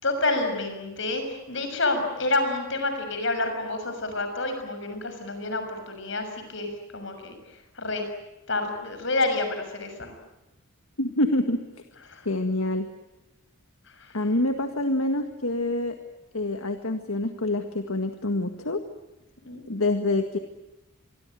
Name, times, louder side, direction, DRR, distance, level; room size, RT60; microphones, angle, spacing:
voice 1, 0.0-7.3 7.7-8.1 8.5-10.1 12.1-12.3 13.9-14.2 19.4-19.6, left 2 dB, 55° left, 7 dB, 6.6 m, -28 dB
voice 2, 11.0-11.6 12.3-12.9 14.1-16.0 16.3-18.8 19.7-20.4, left 2 dB, 75° left, 7 dB, 1.9 m, -26 dB
26.5 x 23.0 x 9.2 m, 0.97 s
head